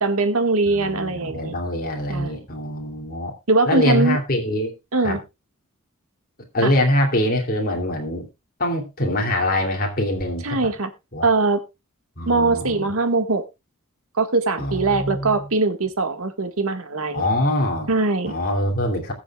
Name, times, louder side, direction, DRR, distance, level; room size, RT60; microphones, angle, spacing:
voice 1, 0.0-1.5 2.1-2.4 3.5-4.2 4.9-5.2 6.6-6.7 10.4-10.9 11.2-11.6 12.3-13.4 14.2-17.3 17.9-18.3, right 3 dB, 70° right, 7 dB, 1.8 m, -21 dB
voice 2, 0.7-3.3 3.7-4.7 5.0-5.2 6.5-8.3 8.6-10.7 11.1-11.3 12.2-12.9 14.6-15.3 17.1-17.9 18.3-19.1, left 1 dB, 45° left, 1 dB, 2.9 m, -24 dB
21.0 x 7.0 x 2.4 m, 0.24 s
head